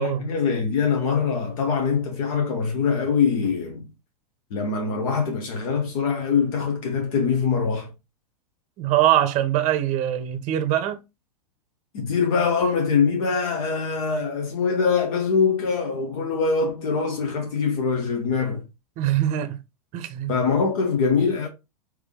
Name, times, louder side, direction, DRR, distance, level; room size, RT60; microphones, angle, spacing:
voice 1, 0.0-3.8 4.5-7.9 11.9-18.6 20.3-21.5, left 5 dB, 60° left, 1.1 m, -23 dB
voice 2, 8.8-11.0 19.0-19.6 19.9-20.3, right 12 dB, 35° right, 0.7 m, -23 dB
3.5 x 3.2 x 3.6 m
hypercardioid pair, 125°, 20 cm